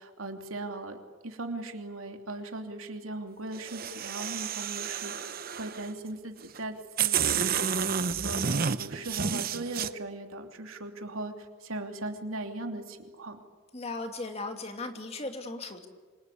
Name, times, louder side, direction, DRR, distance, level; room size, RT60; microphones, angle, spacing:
voice 1, 0.0-13.4, right 2 dB, 90° right, 5 dB, 3.0 m, -39 dB
sound 1, 3.5-5.9 6.6-6.7 7.0-9.9, right 7 dB, 45° right, 0.9 m, -30 dB
voice 2, 13.7-15.9, left 2 dB, 30° left, 5 dB, 2.5 m, -37 dB
27.0 x 25.0 x 8.6 m, 1.5 s
head